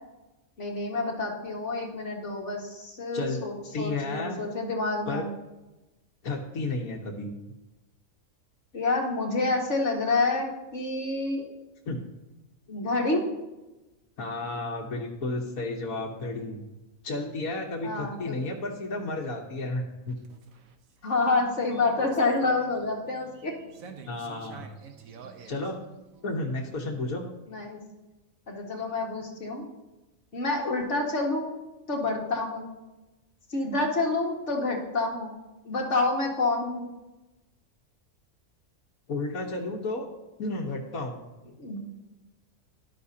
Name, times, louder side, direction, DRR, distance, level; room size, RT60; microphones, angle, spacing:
voice 1, 0.6-5.3 8.7-11.5 12.7-13.2 17.8-18.4 21.0-23.6 27.5-27.8 28.5-29.6 30.3-31.6 31.9-32.7 33.5-35.3 35.6-36.9 41.6-41.8, left 3 dB, 60° left, 0 dB, 2.1 m, -28 dB
voice 2, 3.7-4.4 5.1-5.2 6.2-7.3 11.9-12.0 14.2-16.6 17.0-20.2 24.1-24.7 25.5-25.8 26.2-27.3 39.1-40.1 40.4-41.2, left 2 dB, 80° left, -1 dB, 1.7 m, -32 dB
sound 1, 20.0-26.9, right 5 dB, 75° right, 1.4 m, -48 dB
13.0 x 11.5 x 2.8 m, 1.0 s
omnidirectional pair, 1.4 m